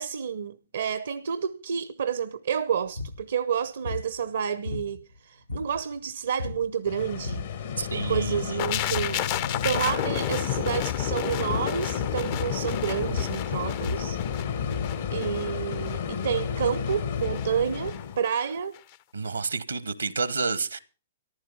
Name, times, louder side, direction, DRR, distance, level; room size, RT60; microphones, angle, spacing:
voice 1, 0.0-7.4 7.9-9.3 9.6-14.2 15.1-18.8, right 7 dB, 70° right, 0.6 m, -30 dB
sound 1, 2.9-3.2 3.8-4.1 4.6-5.2 5.5-6.0 6.4-6.7 7.1-7.6 8.0-8.4 8.7-9.3 9.7-10.1 10.5-10.9 11.5-11.8 12.3-12.7 13.0-15.0, left 3 dB, 90° left, 1.3 m, -36 dB
sound 2, 6.9-18.2, left 7 dB, 65° left, 1.4 m, -33 dB
voice 2, 7.8-8.6 19.1-20.8, right 4 dB, 85° right, 1.1 m, -30 dB
sound 3, 8.6-18.5 18.8-19.0, left 12 dB, 45° left, 0.6 m, -32 dB
14.5 x 11.0 x 5.5 m
figure-of-eight pair, 115°, 0 cm